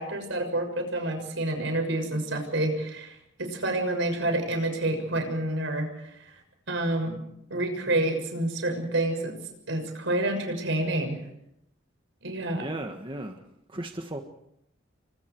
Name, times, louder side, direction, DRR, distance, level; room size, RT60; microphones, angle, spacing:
voice 1, 0.0-5.9 6.7-7.2 7.5-9.3 9.7-11.2 12.2-12.6, right 1 dB, 70° right, 5 dB, 6.5 m, -28 dB
voice 2, 12.6-13.4 13.7-14.2, right 1 dB, 25° right, 4 dB, 1.6 m, -35 dB
30.0 x 24.5 x 4.7 m, 0.78 s
head